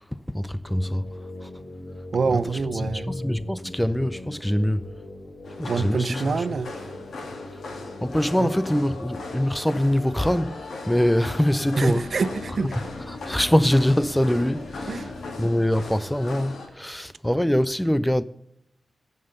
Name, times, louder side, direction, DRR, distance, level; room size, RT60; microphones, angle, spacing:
voice 1, 0.3-1.0 2.9-4.8 5.6-6.2 8.0-10.6 10.9-12.0 13.3-14.9 15.4-18.2, equal, 5° left, 0.4 m, -23 dB
sound 1, 0.7-15.4, left 2 dB, 65° left, 1.8 m, -41 dB
voice 2, 2.1-3.1 5.7-6.7 8.4-8.6 11.8-12.8 14.9-15.1, right 4 dB, 60° right, 0.6 m, -26 dB
sound 2, 5.4-16.7, left 3 dB, 80° left, 2.4 m, -38 dB
15.5 x 5.6 x 6.8 m
wide cardioid pair, 100°, 0 cm